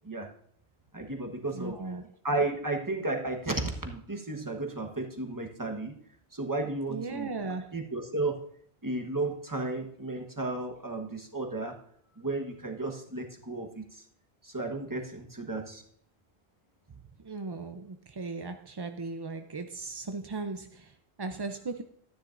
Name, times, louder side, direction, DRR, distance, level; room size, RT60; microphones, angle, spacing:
voice 1, 0.9-2.0 2.2-5.9 6.3-8.5 8.8-11.8 12.2-14.0 14.4-15.8, right 2 dB, 20° right, 3 dB, 1.1 m, -33 dB
voice 2, 1.5-2.1 6.9-7.7 17.2-21.8, right 3 dB, 40° right, 7 dB, 0.4 m, -37 dB
13.0 x 9.9 x 2.5 m, 0.65 s
omnidirectional pair, 1.1 m